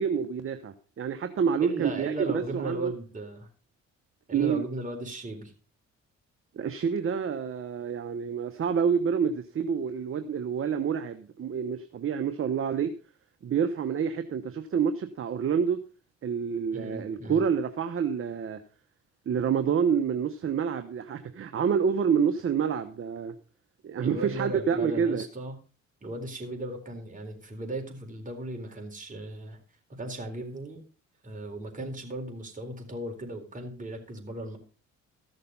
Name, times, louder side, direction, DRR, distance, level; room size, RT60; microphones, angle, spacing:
voice 1, 0.0-2.9 4.3-4.6 6.6-12.9 13.4-15.8 16.2-18.6 19.3-23.3 23.8-25.2, right 7 dB, 45° right, 9 dB, 1.0 m, -28 dB
voice 2, 1.6-3.5 4.3-5.5 16.7-17.4 24.0-25.6 26.0-29.6 29.9-30.8 31.2-34.6, right 2 dB, 25° right, 2 dB, 4.1 m, -36 dB
14.5 x 6.6 x 5.4 m, 0.37 s
cardioid pair, 90°, 30 cm